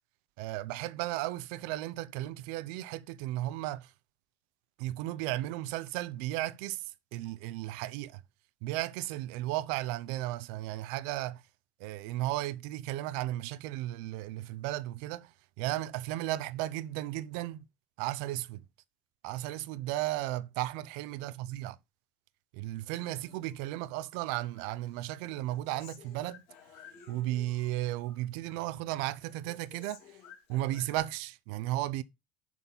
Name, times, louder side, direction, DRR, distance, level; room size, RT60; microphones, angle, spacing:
voice 1, 0.4-3.9 4.8-6.8 7.1-8.2 8.6-11.4 11.8-15.3 15.6-17.6 18.0-18.6 19.2-21.8 22.5-26.4 27.1-30.0 30.5-32.0, right 15 dB, 80° right, 0.6 m, -35 dB
Human voice, 23.0-24.2 24.5-27.7 28.0-28.7 29.0-31.0, left 8 dB, 70° left, 2.5 m, -55 dB
7.3 x 4.1 x 5.4 m
supercardioid pair, 115°, 5 cm